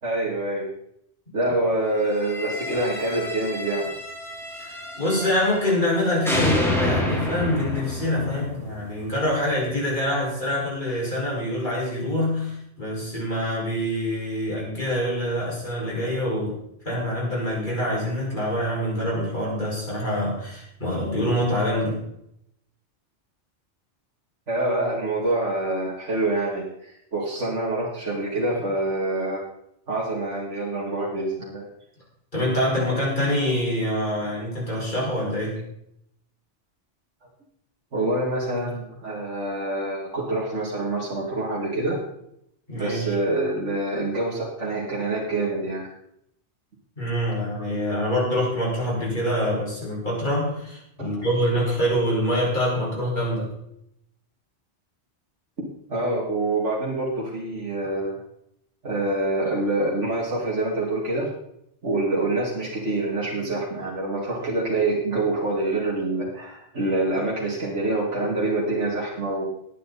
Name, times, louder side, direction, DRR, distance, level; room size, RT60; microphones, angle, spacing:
voice 1, 0.0-0.7 1.3-3.9 24.5-29.4 29.9-31.7 37.9-42.0 42.7-45.9 51.0-51.2 55.9-58.2 58.8-61.3 61.8-69.5, right 2 dB, 80° right, -5 dB, 2.8 m, -26 dB
sound 1, 2.1-5.9 6.3-9.3, left 1 dB, ahead, 4.0 m, -29 dB
voice 2, 4.6-16.6 16.8-22.0 32.3-35.6 42.7-43.1 47.0-53.5, left 1 dB, 40° left, -5 dB, 5.9 m, -25 dB
18.5 x 9.8 x 4.2 m, 0.77 s
omnidirectional pair, 1.2 m